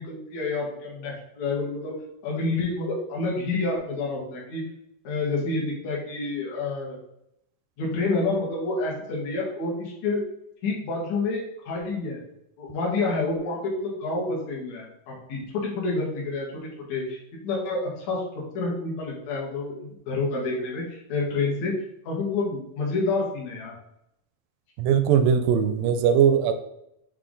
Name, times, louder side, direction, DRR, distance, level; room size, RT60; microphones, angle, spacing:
voice 1, 0.0-1.9 2.2-4.6 5.0-7.0 7.8-10.2 10.6-11.4 11.7-12.2 12.6-16.5 16.9-21.7 22.0-23.7, left 3 dB, 55° left, -4 dB, 2.6 m, -28 dB
voice 2, 24.8-26.5, right 8 dB, 80° right, 9 dB, 2.0 m, -20 dB
7.7 x 3.4 x 3.8 m, 0.81 s
omnidirectional pair, 4.2 m